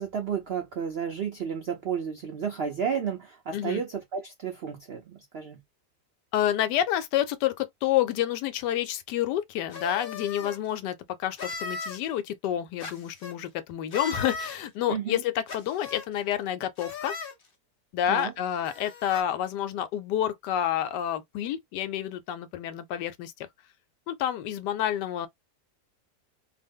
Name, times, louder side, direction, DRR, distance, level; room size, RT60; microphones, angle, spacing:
voice 1, 0.0-5.6 14.9-15.2 18.1-18.3, right 7 dB, 70° right, 0.5 m, -32 dB
voice 2, 6.3-17.1 17.9-23.3 24.1-25.3, left 11 dB, 85° left, 1.2 m, -29 dB
sound 1, 9.7-10.6 11.4-12.0 12.8-13.3 13.9-14.6 15.5-16.1 16.8-17.3 18.2-18.3 18.6-19.2, left 4 dB, 50° left, 0.6 m, -37 dB
2.9 x 2.0 x 3.4 m
omnidirectional pair, 1.8 m